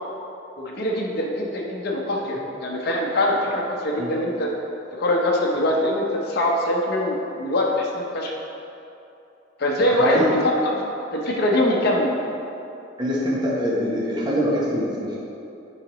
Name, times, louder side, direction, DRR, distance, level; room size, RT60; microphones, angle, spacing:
voice 1, 0.6-4.5 5.0-8.3 9.6-10.8 11.1-12.1, left 1 dB, 55° left, -2 dB, 0.7 m, -23 dB
voice 2, 9.9-10.3 13.0-15.2, equal, 20° right, -6 dB, 0.9 m, -23 dB
7.7 x 4.9 x 3.0 m, 2.8 s
head